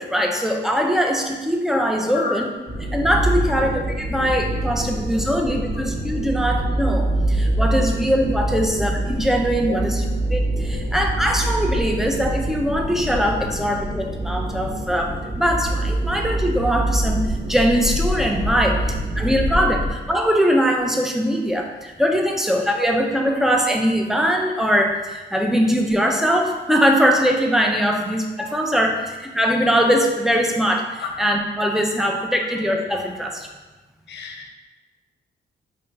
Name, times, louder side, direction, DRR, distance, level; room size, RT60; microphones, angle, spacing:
voice 1, 0.0-2.5 2.9-10.0 10.3-18.8 19.2-33.5, equal, ahead, 1 dB, 0.5 m, -21 dB
sound 1, 2.7-19.9, right 1 dB, 30° right, 0.9 m, -25 dB
voice 2, 9.7-10.1 10.7-10.8 18.5-18.7 31.0-31.1 32.0-32.1 34.1-34.5, left 5 dB, 70° left, 2 dB, 0.6 m, -32 dB
4.3 x 2.4 x 3.1 m, 1.2 s
cardioid pair, 75°, 19 cm